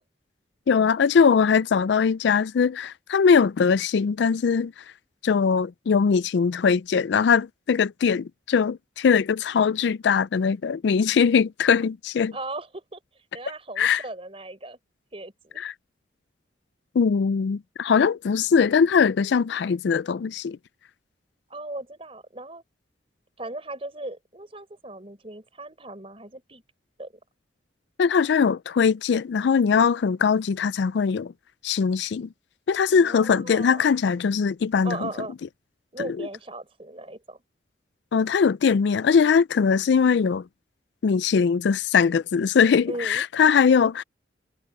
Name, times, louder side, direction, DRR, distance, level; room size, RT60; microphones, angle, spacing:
voice 1, 0.7-4.7 5.2-12.3 13.8-14.0 15.6-15.7 17.0-20.6 28.0-31.3 31.6-32.3 32.7-35.1 36.0-36.3 38.1-40.4 41.0-44.0, left 6 dB, 70° left, 0.4 m, -21 dB
voice 2, 12.3-13.0 13.3-14.8 15.1-15.7 21.5-22.6 23.4-26.6 27.0-27.1 32.9-34.0 34.8-35.3 35.9-37.4 42.9-43.3, right 2 dB, 30° right, 4.6 m, -37 dB
head